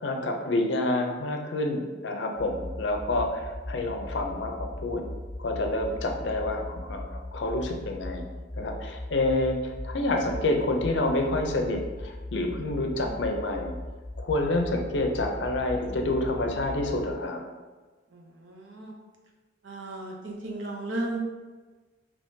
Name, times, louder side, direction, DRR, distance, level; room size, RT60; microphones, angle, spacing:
voice 1, 0.0-5.0 5.4-8.3 8.6-13.8 14.2-17.4, left 2 dB, 65° left, 4 dB, 0.4 m, -28 dB
sound 1, 2.4-17.1, left 1 dB, 10° right, 1.0 m, -39 dB
voice 2, 18.1-18.9 19.6-21.2, right 2 dB, 80° right, 0 dB, 0.6 m, -35 dB
3.5 x 2.9 x 2.7 m, 1.3 s
head